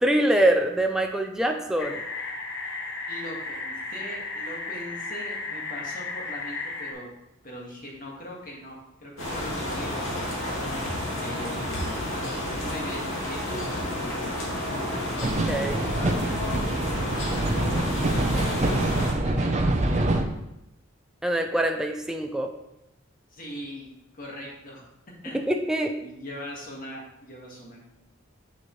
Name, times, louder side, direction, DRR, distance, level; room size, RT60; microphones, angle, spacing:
voice 1, 0.0-2.0 15.2-15.9 21.2-22.5 25.3-25.9, right 1 dB, 5° right, 4 dB, 0.4 m, -24 dB
sound 1, 1.8-6.9, left 3 dB, 60° left, 1.1 m, -34 dB
voice 2, 3.1-7.1 7.4-10.5 11.1-12.3 12.6-13.9 15.9-16.7 17.2-17.9 18.5-20.1 23.3-23.9 24.1-24.8 25.2-25.4 26.0-27.8, left 1 dB, 45° left, -2 dB, 1.8 m, -40 dB
sound 2, 9.2-19.1, left 1 dB, 85° left, 2.4 m, -30 dB
sound 3, 15.2-20.2, right 1 dB, 35° right, 0.7 m, -25 dB
7.0 x 6.8 x 3.2 m, 0.87 s
head